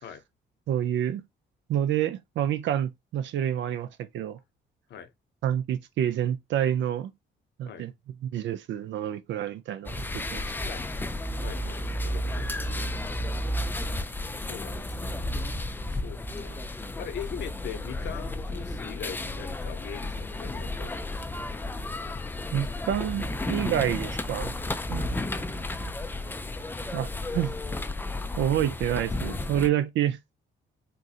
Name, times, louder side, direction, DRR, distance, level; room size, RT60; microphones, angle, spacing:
voice 1, 0.7-1.2 1.7-3.9 4.1-4.4 5.4-7.1 7.6-7.9 8.2-10.0 10.3-10.4 22.5-24.5 24.9-25.1 26.9-27.6 28.4-30.2, right 10 dB, 70° right, 0.4 m, -28 dB
sound 1, 9.8-29.7, left 1 dB, 10° left, 0.3 m, -32 dB
voice 2, 11.4-12.9 14.3-21.7 24.9-25.2, left 8 dB, 60° left, 0.6 m, -42 dB
3.7 x 2.7 x 2.3 m
cardioid pair, 90°, 20 cm